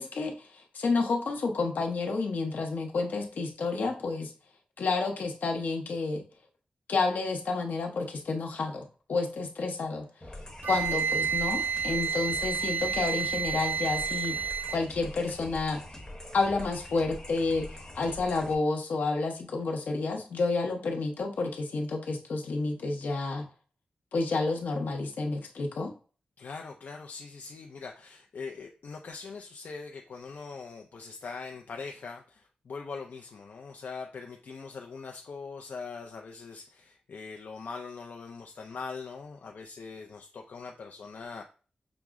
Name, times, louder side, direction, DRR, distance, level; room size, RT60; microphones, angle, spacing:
voice 1, 0.0-4.3 4.8-6.2 6.9-10.1 10.6-14.3 14.7-15.8 16.3-23.5 24.1-25.9, left 3 dB, 90° left, 1 dB, 0.9 m, -30 dB
sound 1, 10.2-18.5, left 1 dB, 20° left, 1.0 m, -44 dB
Wind instrument woodwind instrument, 10.6-14.8, right 7 dB, 75° right, 0.4 m, -30 dB
voice 2, 26.4-41.4, left 4 dB, 70° left, 2 dB, 0.4 m, -42 dB
6.0 x 2.0 x 3.5 m, 0.38 s
wide cardioid pair, 110°, 3 cm